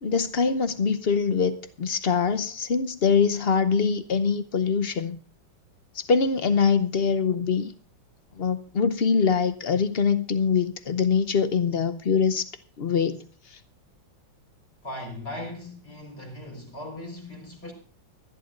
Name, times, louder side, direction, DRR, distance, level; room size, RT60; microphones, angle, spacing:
voice 1, 0.0-5.2 6.0-7.7 8.4-12.5 12.8-13.2 13.5-13.6, left 5 dB, 60° left, 0.6 m, -23 dB
voice 2, 14.8-17.7, left 1 dB, 30° left, 4.7 m, -38 dB
24.0 x 11.0 x 2.5 m
omnidirectional pair, 2.1 m